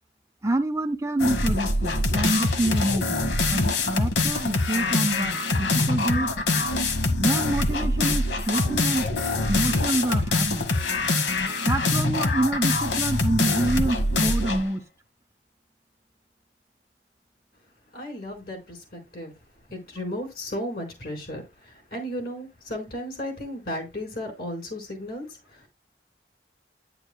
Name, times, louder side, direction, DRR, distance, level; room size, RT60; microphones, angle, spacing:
voice 1, 0.4-6.3 7.2-9.0 9.5-10.7 11.6-14.8, right 1 dB, 15° right, 0.5 m, -27 dB
sound 1, 1.2-14.7, left 2 dB, 90° left, 1.3 m, -24 dB
voice 2, 17.9-19.3 19.7-25.7, left 1 dB, 55° left, 4.3 m, -35 dB
9.9 x 8.7 x 2.2 m
head